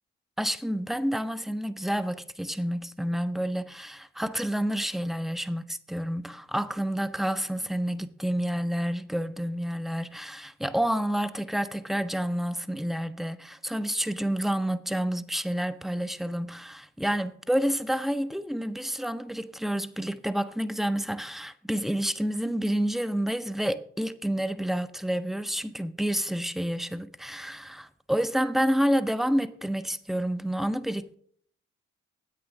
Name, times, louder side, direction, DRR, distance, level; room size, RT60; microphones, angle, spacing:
voice 1, 0.4-31.1, equal, ahead, 0.5 m, -29 dB
10.0 x 8.6 x 3.7 m
hypercardioid pair, 45°, 34 cm